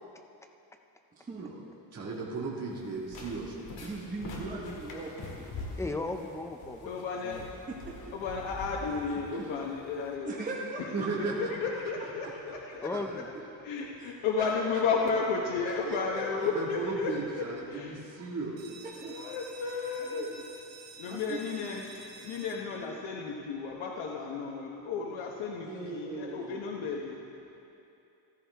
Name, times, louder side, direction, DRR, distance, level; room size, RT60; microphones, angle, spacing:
voice 1, 1.2-1.5 3.8-5.4 7.7-8.1 9.1-9.4 10.2-11.3 14.0-14.1 15.9-16.2 18.8-19.1 20.0-20.2 21.0-21.7 25.6-26.6, right 3 dB, 20° right, -4 dB, 1.0 m, -40 dB
voice 2, 1.9-3.6 10.9-11.5 12.9-13.1 16.5-18.6, right 4 dB, 35° right, -4 dB, 1.8 m, -35 dB
sound 1, 2.7-10.1, left 2 dB, 55° left, 2.0 m, -44 dB
voice 3, 5.8-7.4 12.8-13.3, left 2 dB, 5° left, 5 dB, 0.3 m, -36 dB
voice 4, 6.8-7.4 8.1-10.4 11.4-13.2 13.6-17.4 17.7-18.0 19.0-20.4 21.0-21.9 22.2-27.2, left 5 dB, 90° left, -1 dB, 1.1 m, -33 dB
sound 2, 18.6-24.0, right 4 dB, 70° right, 1.6 m, -51 dB
14.5 x 13.0 x 3.4 m, 2.8 s
cardioid pair, 170°, 45 cm